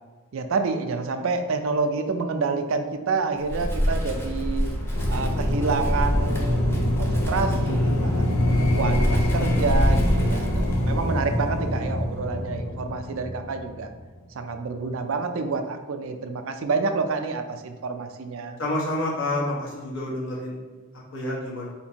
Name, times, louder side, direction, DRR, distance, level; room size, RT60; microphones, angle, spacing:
voice 1, 0.3-4.7 5.1-8.4 8.8-13.9 14.3-18.6, right 4 dB, 65° right, 7 dB, 0.4 m, -28 dB
Wind, 3.4-11.1, equal, 10° left, 0.6 m, -27 dB
sound 1, 4.9-14.0, left 1 dB, 90° left, 0.6 m, -25 dB
voice 2, 18.6-20.5 21.1-21.7, left 1 dB, 60° left, -5 dB, 1.3 m, -28 dB
4.3 x 4.1 x 2.9 m, 1.3 s
head